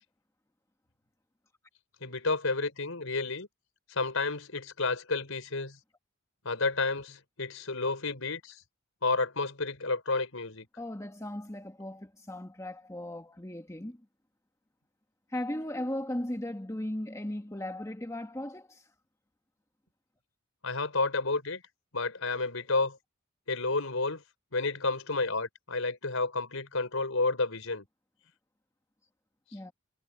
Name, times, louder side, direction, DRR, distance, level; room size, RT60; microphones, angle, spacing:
voice 1, 2.0-3.5 3.9-5.8 6.4-8.6 9.0-10.7 20.6-21.6 21.9-23.0 23.5-24.2 24.5-27.8, left 3 dB, 80° left, 4.5 m, -31 dB
voice 2, 10.8-14.1 15.3-18.9 29.5-29.7, left 1 dB, 15° left, 1.4 m, -37 dB
head